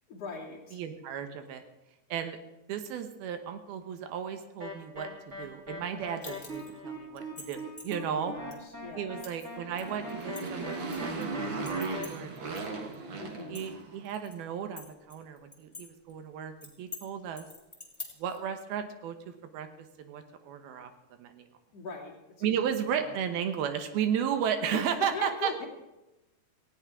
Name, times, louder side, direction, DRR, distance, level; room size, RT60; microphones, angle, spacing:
voice 1, 0.1-0.8 5.9-6.0 7.9-9.2 13.2-13.6 21.7-22.6 23.0-23.1 24.7-25.7, left 4 dB, 45° left, -3 dB, 3.5 m, -41 dB
voice 2, 0.7-1.6 2.1-2.4 2.7-8.3 9.0-10.7 11.0-12.9 13.5-17.5 18.2-19.2 19.5-19.7 20.0-20.9 21.2-21.4 22.4-25.5, right 8 dB, 80° right, 8 dB, 3.0 m, -34 dB
sound 1, 4.6-12.0, left 1 dB, 20° right, 3.0 m, -42 dB
sound 2, 6.2-6.8 7.2-8.0 8.5-8.6 9.2-9.4 9.8-11.2 11.6-12.7 12.9-13.0 13.4-14.3 14.8-15.8 16.1-16.2 16.6-17.0 17.4-18.4, left 3 dB, 10° left, 2.1 m, -45 dB
Motorcycle, 9.5-14.1, right 3 dB, 50° right, 1.5 m, -36 dB
18.5 x 16.5 x 3.7 m, 1.0 s
omnidirectional pair, 4.4 m